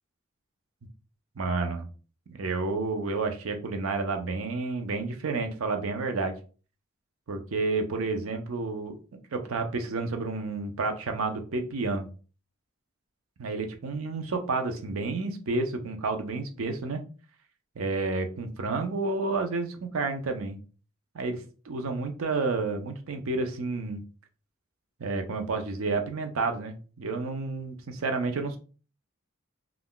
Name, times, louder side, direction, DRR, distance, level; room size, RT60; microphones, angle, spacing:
voice 1, 1.4-1.9 2.3-6.3 7.3-9.0 9.3-12.1 13.4-17.0 17.8-20.6 21.1-24.0 25.0-28.6, right 3 dB, 85° right, 6 dB, 0.5 m, -30 dB
2.4 x 2.2 x 3.6 m, 0.37 s
head